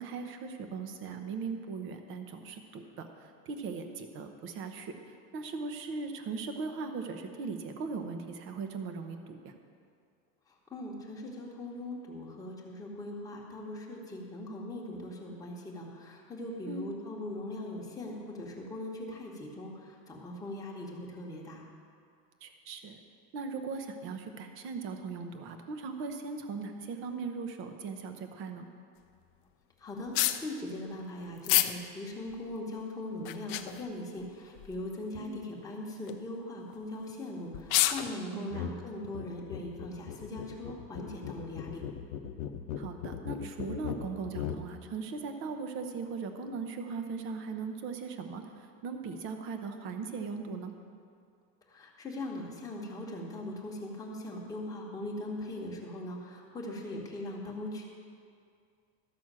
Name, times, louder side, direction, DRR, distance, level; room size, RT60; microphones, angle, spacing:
voice 1, 0.0-3.1 3.5-4.9 5.3-9.5 16.6-16.9 22.4-23.0 23.3-28.7 35.2-35.4 38.3-38.7 42.8-50.7, right 4 dB, 35° right, 7 dB, 0.8 m, -39 dB
voice 2, 10.7-21.6 29.8-41.8 51.7-57.9, left 1 dB, 10° left, -3 dB, 1.3 m, -40 dB
sound 1, 30.1-30.4 31.4-31.7 32.3-32.4 33.2-33.8 34.6-34.8 35.1-35.2 35.9-36.1 37.1-37.2 37.5-38.1, left 15 dB, 45° left, 0.4 m, -28 dB
sound 2, 38.5-38.8 39.0-44.7, left 8 dB, 80° left, 0.8 m, -39 dB
13.0 x 6.1 x 7.5 m, 2.3 s
cardioid pair, 180°, 38 cm